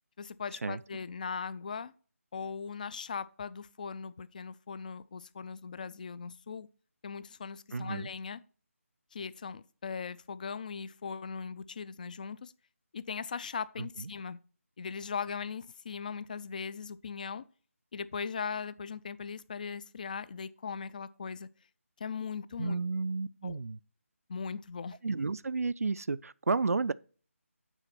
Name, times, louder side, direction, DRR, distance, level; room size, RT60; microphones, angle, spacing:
voice 1, 0.2-1.9 2.3-6.7 7.0-8.4 9.1-12.5 12.9-14.4 14.8-17.4 17.9-21.5 22.0-22.8 23.4-23.6 24.3-25.0, left 6 dB, 35° left, 0.3 m, -39 dB
voice 2, 7.7-8.1 13.8-14.1 22.6-23.8 25.0-26.9, right 4 dB, 80° right, 0.4 m, -32 dB
9.0 x 4.0 x 5.9 m
figure-of-eight pair, 160°, 8 cm